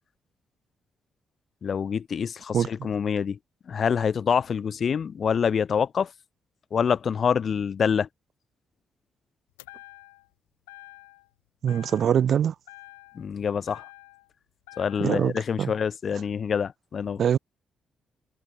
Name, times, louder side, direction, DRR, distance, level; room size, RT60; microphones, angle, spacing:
voice 1, 1.6-3.4 3.7-6.1 6.7-8.1 13.1-13.8 14.8-17.2, left 7 dB, 55° left, 0.7 m, -26 dB
sound 1, 9.6-10.3 10.7-11.3 11.7-12.4 12.7-14.3 14.7-15.3, left 22 dB, 85° left, 3.5 m, -48 dB
voice 2, 11.6-12.5 15.0-15.3 15.6-15.7 17.2-17.4, right 8 dB, 60° right, 0.4 m, -22 dB
hypercardioid pair, 40°, 0 cm